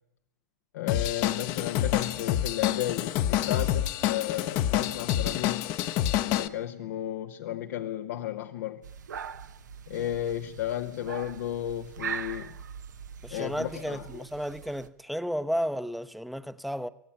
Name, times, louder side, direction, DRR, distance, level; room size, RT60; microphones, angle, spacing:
voice 1, 0.7-5.6 6.3-8.8 9.9-12.6 13.3-14.0, left 12 dB, 70° left, 1.1 m, -33 dB
Drum kit / Drum, 0.9-6.5, left 12 dB, 45° left, 1.0 m, -27 dB
sound 1, 8.8-14.9, right 7 dB, 85° right, 1.2 m, -41 dB
voice 2, 13.2-16.9, equal, ahead, 0.8 m, -33 dB
24.5 x 16.5 x 8.7 m
hypercardioid pair, 120°, 9 cm